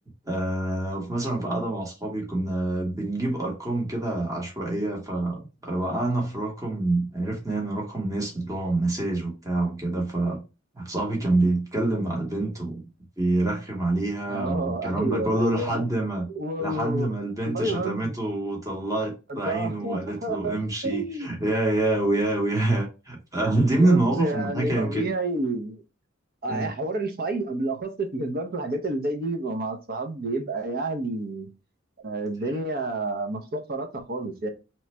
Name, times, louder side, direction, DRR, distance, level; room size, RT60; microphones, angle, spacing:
voice 1, 0.2-10.4 10.7-12.8 13.2-16.3 16.6-25.1 26.5-26.7, right 2 dB, 15° right, 1.0 m, -26 dB
voice 2, 14.3-15.9 16.3-17.1 17.4-18.2 19.3-21.4 23.8-25.8 26.4-31.5 32.0-34.5, right 2 dB, 50° right, 0.7 m, -30 dB
3.0 x 2.4 x 4.2 m
head